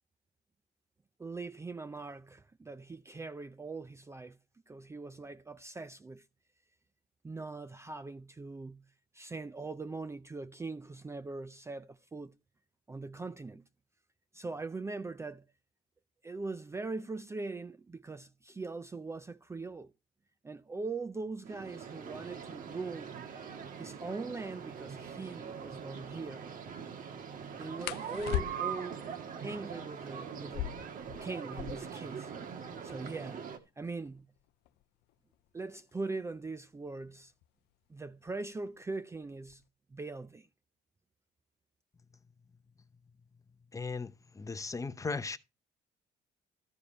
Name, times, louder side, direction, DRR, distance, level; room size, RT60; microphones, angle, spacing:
voice 1, 1.2-4.4 4.7-6.2 7.2-8.8 9.1-12.3 12.9-13.6 14.3-15.5 16.2-19.9 20.4-23.1 23.8-26.5 27.6-29.0 29.4-30.7 31.2-32.3 32.8-33.5 33.8-34.3 35.5-37.3 37.9-39.6 39.9-40.5, right 3 dB, 15° right, 0.5 m, -41 dB
sound 1, 21.4-33.6, right 7 dB, 55° right, 1.6 m, -42 dB
sound 2, 24.6-24.7 25.1-25.4 27.8-28.9 30.4-32.0 32.3-32.4 32.6-33.2 33.8-36.4 37.4-37.7 38.1-38.6 38.9-39.7, left 14 dB, 80° left, 0.5 m, -40 dB
voice 2, 43.7-45.4, left 4 dB, 20° left, 0.7 m, -37 dB
13.5 x 4.9 x 5.4 m
cardioid pair, 110°, 17 cm